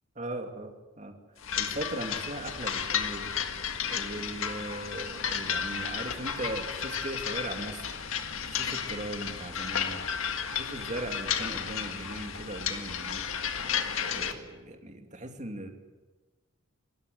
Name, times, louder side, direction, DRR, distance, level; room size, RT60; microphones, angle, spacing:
voice 1, 0.2-1.1 1.6-3.3 3.9-8.0 8.5-10.0 10.5-13.3 14.0-15.7, right 1 dB, 35° right, 5 dB, 2.6 m, -38 dB
sound 1, 1.4-14.3, left 7 dB, 85° left, 1.8 m, -33 dB
26.5 x 14.0 x 9.5 m, 1.2 s
head